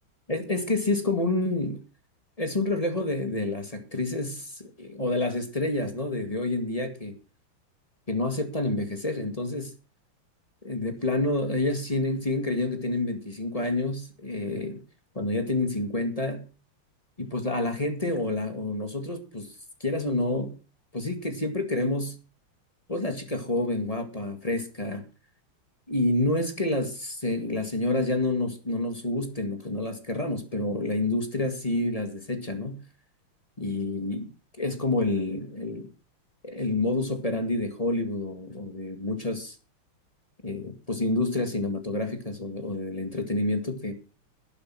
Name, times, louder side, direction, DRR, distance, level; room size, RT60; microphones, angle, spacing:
voice 1, 0.3-1.8 2.4-7.1 8.1-9.7 10.6-14.8 15.2-16.4 17.2-19.5 19.8-20.5 20.9-22.1 22.9-25.0 25.9-32.8 33.6-34.3 34.6-35.9 36.4-39.6 40.4-43.9, left 2 dB, 20° left, 6 dB, 1.9 m, -28 dB
12.0 x 10.0 x 6.1 m, 0.35 s
omnidirectional pair, 2.3 m